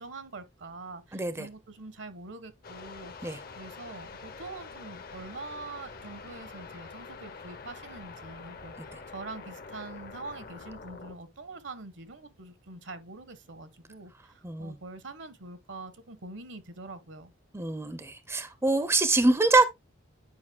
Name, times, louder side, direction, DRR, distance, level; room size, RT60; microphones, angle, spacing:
voice 1, 0.0-17.3, right 3 dB, 70° right, 1.0 m, -44 dB
voice 2, 1.1-1.5 3.2-3.4 14.4-14.8 17.5-19.6, right 3 dB, 15° right, 0.5 m, -25 dB
sound 1, 2.6-11.2, left 4 dB, 50° left, 0.8 m, -45 dB
9.6 x 5.2 x 2.2 m
head